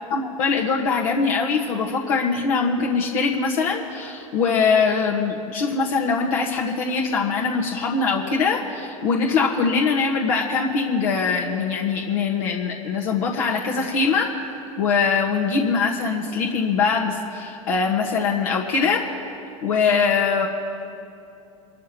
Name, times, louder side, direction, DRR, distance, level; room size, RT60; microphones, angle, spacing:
voice 1, 0.1-14.3 14.8-19.0 19.6-20.5, left 5 dB, 70° left, -1 dB, 1.5 m, -22 dB
24.5 x 13.5 x 3.1 m, 2.6 s
hypercardioid pair, 85°, 18 cm